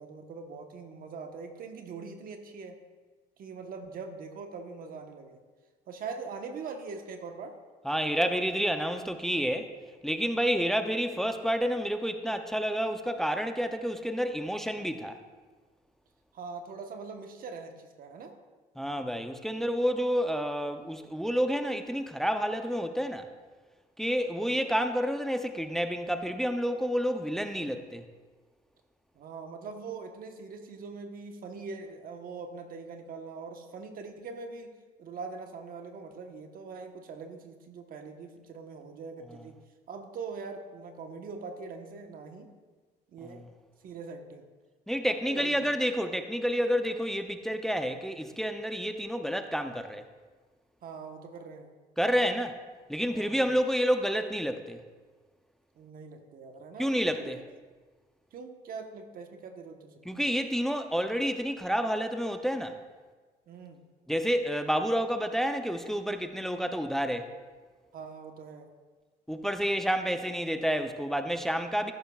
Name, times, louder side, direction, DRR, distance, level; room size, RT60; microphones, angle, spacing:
voice 1, 0.0-2.8 3.4-5.4 5.9-7.6 16.3-18.3 29.1-39.6 39.9-42.5 43.1-43.5 43.8-44.5 45.1-45.7 50.8-51.7 53.1-53.5 55.7-57.4 58.3-60.2 63.5-63.8 67.9-68.7, right 4 dB, 55° right, 5 dB, 1.1 m, -42 dB
voice 2, 7.8-9.7 10.0-15.2 18.8-23.3 24.0-28.0 43.3-43.4 44.9-50.0 52.0-52.6 52.9-54.8 56.8-57.4 60.1-62.8 64.1-67.3 69.3-71.9, equal, ahead, 7 dB, 0.5 m, -29 dB
13.5 x 11.0 x 2.4 m, 1.4 s
cardioid pair, 110°, 17 cm